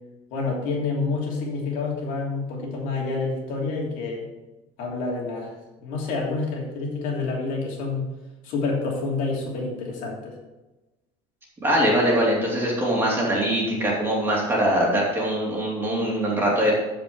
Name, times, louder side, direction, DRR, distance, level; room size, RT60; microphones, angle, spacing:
voice 1, 0.3-4.3 4.8-5.5 5.8-8.1 8.4-10.3, left 3 dB, 55° left, -2 dB, 3.0 m, -28 dB
voice 2, 11.6-16.7, equal, 15° right, -4 dB, 2.8 m, -22 dB
14.5 x 5.2 x 5.2 m, 1.1 s
cardioid pair, 165°, 17 cm